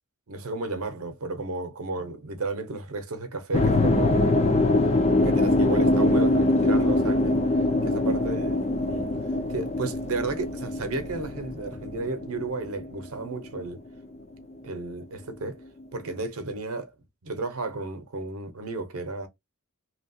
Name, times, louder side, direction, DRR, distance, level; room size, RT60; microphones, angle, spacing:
voice 1, 0.3-4.2 5.2-7.4 7.9-9.1 9.5-13.8 14.6-15.6 15.9-16.9 17.2-19.3, right 3 dB, 70° right, 0.8 m, -33 dB
sound 1, 3.5-13.7, left 2 dB, 30° left, 0.4 m, -23 dB
2.9 x 2.3 x 2.6 m
head